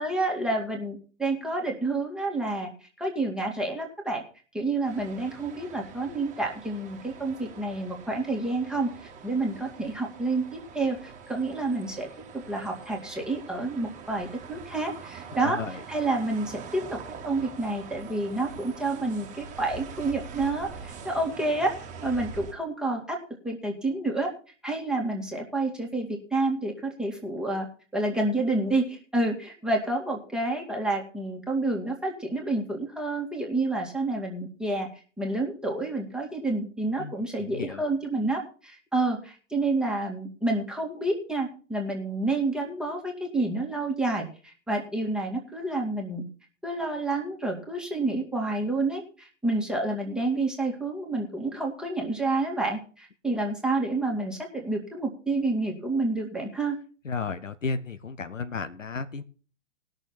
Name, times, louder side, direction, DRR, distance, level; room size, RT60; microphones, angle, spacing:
voice 1, 0.0-2.7 3.0-4.2 4.5-8.9 9.2-12.1 12.3-15.6 15.9-17.0 17.2-23.2 23.4-24.3 24.6-27.7 27.9-34.9 35.2-46.2 46.6-56.8, right 2 dB, ahead, 0 dB, 2.2 m, -29 dB
sound 1, 4.9-22.5, right 6 dB, 20° right, 1.9 m, -44 dB
voice 2, 15.4-15.8 37.0-37.1 37.4-37.9 57.0-59.2, left 4 dB, 80° left, 12 dB, 1.1 m, -33 dB
19.5 x 6.6 x 4.3 m, 0.38 s
figure-of-eight pair, 115°, 38 cm